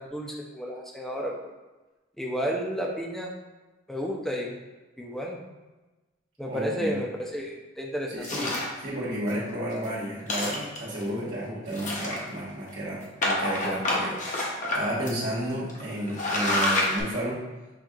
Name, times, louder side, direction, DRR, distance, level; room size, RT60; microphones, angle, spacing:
voice 1, 0.0-1.4 2.2-3.3 3.9-4.6 5.0-5.5 6.4-8.6, equal, ahead, -1 dB, 0.5 m, -32 dB
voice 2, 6.5-7.0 8.1-17.4, right 1 dB, 70° right, -8 dB, 1.2 m, -32 dB
sound 1, 8.2-8.8 9.3-9.4 9.7-9.8 10.2-11.0 11.7-12.5 13.2-14.8 15.1-15.2 15.7-17.0, left 1 dB, 40° left, 0.7 m, -27 dB
6.0 x 2.7 x 2.4 m, 1.1 s
head